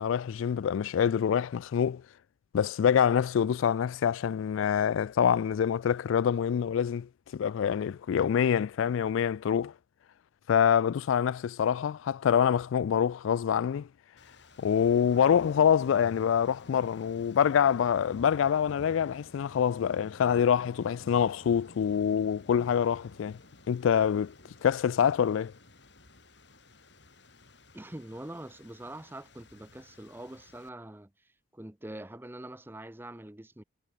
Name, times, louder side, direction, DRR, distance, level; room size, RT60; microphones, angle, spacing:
voice 1, 0.0-2.0 2.5-9.7 10.5-13.9 14.6-23.4 23.7-24.3 24.6-25.5, left 8 dB, 85° left, 0.3 m, -26 dB
sound 1, 14.2-30.7, left 2 dB, 60° left, 4.9 m, -53 dB
voice 2, 27.7-33.6, right 1 dB, 10° right, 0.6 m, -44 dB
head